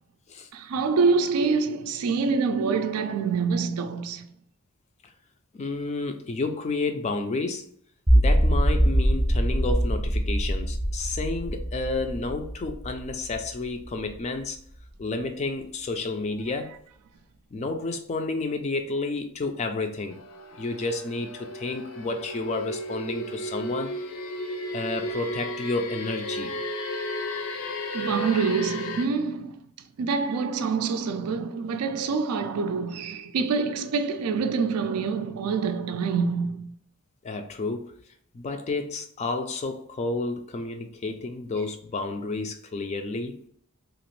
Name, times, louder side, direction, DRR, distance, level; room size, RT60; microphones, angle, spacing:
voice 1, 0.5-4.3 27.9-29.5 30.0-36.7, right 5 dB, 80° right, 0.4 m, -26 dB
voice 2, 5.5-7.7 8.1-14.6 15.0-16.7 17.5-20.2 20.5-24.0 24.7-26.5 37.2-37.9 38.3-43.4, left 3 dB, 30° left, 0.3 m, -31 dB
sound 1, 8.1-14.1, equal, 15° right, 0.6 m, -23 dB
sound 2, 20.1-29.1, left 1 dB, 85° left, 0.5 m, -34 dB
2.9 x 2.4 x 3.0 m
head